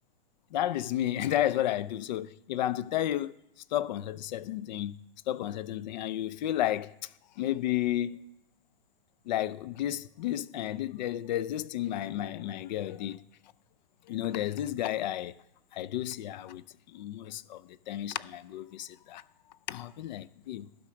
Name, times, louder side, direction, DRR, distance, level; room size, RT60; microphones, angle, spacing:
voice 1, 0.5-3.3 3.7-5.0 5.3-7.1 7.4-8.2 9.3-13.2 14.1-15.4 15.7-19.2 19.7-20.7, left 12 dB, 50° left, 0.5 m, -32 dB
12.0 x 5.2 x 5.8 m
hypercardioid pair, 135°, 29 cm